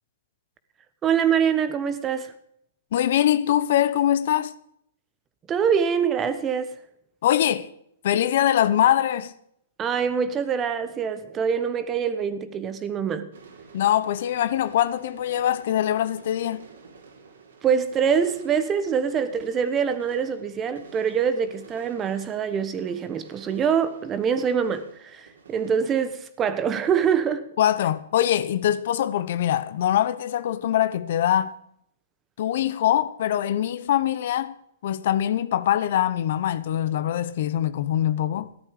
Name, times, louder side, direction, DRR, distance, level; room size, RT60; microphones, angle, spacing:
voice 1, 1.0-2.3 5.5-6.7 9.8-13.3 17.6-27.5, right 7 dB, 20° right, 1.2 m, -24 dB
voice 2, 2.9-4.5 7.2-7.7 8.0-9.3 13.7-16.6 27.6-31.5 32.4-34.5 34.8-38.5, left 11 dB, 60° left, 1.0 m, -23 dB
sound 1, 13.3-25.8, right 5 dB, 80° right, 4.0 m, -50 dB
14.5 x 12.0 x 5.1 m
hypercardioid pair, 150°, 0 cm